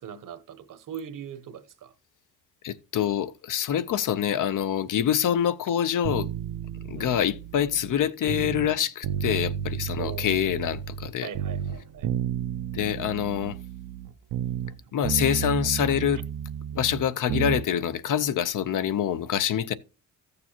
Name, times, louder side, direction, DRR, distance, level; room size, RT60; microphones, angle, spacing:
voice 1, 0.0-1.9 6.9-7.2 10.0-10.4 11.2-12.1, right 8 dB, 60° right, 1.0 m, -40 dB
voice 2, 2.6-6.3 6.9-11.3 12.7-13.6 14.9-16.2 16.7-19.7, left 9 dB, 60° left, 0.7 m, -26 dB
sound 1, 6.0-8.7 9.0-11.1 11.3-14.8 15.0-17.7 17.9-18.0, right 9 dB, 90° right, 0.7 m, -32 dB
14.5 x 6.8 x 2.9 m
cardioid pair, 145°, 36 cm